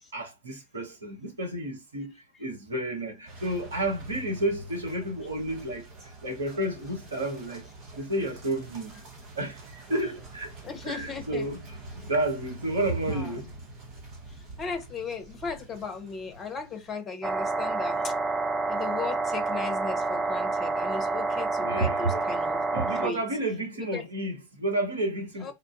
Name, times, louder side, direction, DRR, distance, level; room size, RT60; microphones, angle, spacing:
voice 1, 0.1-7.6 8.0-9.0 9.4-10.5 10.9-13.5 21.5-22.3 22.7-25.5, right 1 dB, 70° right, 1.0 m, -31 dB
sound 1, 3.3-17.0, right 1 dB, 35° right, 1.1 m, -45 dB
voice 2, 10.6-11.4 13.1-13.3 14.6-18.1 18.7-22.6 23.0-23.2 23.8-24.0 25.4-25.5, left 5 dB, 20° left, 0.8 m, -36 dB
sound 2, 17.2-23.1, right 3 dB, 10° right, 0.3 m, -28 dB
3.5 x 2.4 x 2.5 m
figure-of-eight pair, 90°, 0 cm